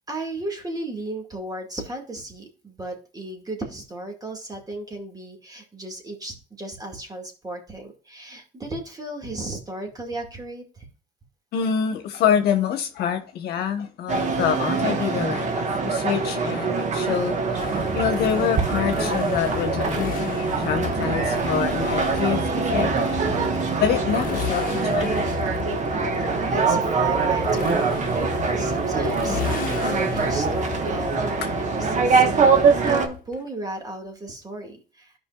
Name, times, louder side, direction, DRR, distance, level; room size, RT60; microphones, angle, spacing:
voice 1, 0.1-10.9 25.7-32.6 32.8-35.1, right 2 dB, 20° right, 2.1 m, -35 dB
voice 2, 11.5-23.4 23.8-25.4, left 8 dB, 70° left, 1.1 m, -26 dB
sound 1, 14.1-33.1, right 4 dB, 45° right, 1.3 m, -23 dB
Motorcycle, 17.6-33.3, left 8 dB, 55° left, 1.0 m, -33 dB
13.5 x 5.2 x 2.4 m
cardioid pair, 110°, 17 cm